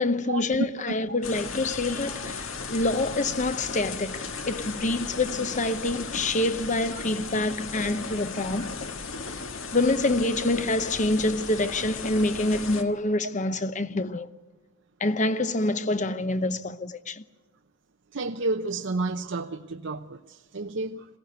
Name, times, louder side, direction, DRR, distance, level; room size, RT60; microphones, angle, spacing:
voice 1, 0.0-8.8 9.7-14.3 15.0-17.2, left 2 dB, 35° left, 0.9 m, -26 dB
sound 1, 1.2-12.8, left 4 dB, 65° left, 1.7 m, -36 dB
voice 2, 18.1-21.1, right 3 dB, 60° right, 0.8 m, -31 dB
21.5 x 17.0 x 8.1 m
head